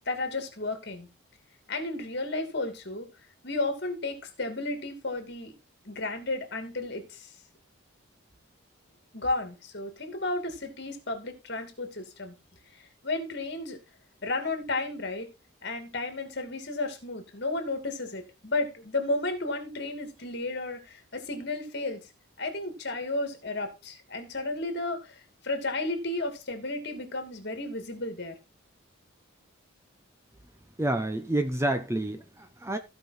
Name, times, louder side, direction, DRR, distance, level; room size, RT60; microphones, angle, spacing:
voice 1, 0.1-1.1 1.7-3.1 3.4-5.5 5.9-7.3 9.1-12.3 13.0-13.8 14.2-15.3 15.6-22.0 22.4-25.1 25.4-28.4, left 2 dB, 50° left, 2.5 m, -33 dB
voice 2, 30.8-32.8, right 1 dB, 15° right, 0.8 m, -29 dB
15.5 x 5.3 x 4.2 m
head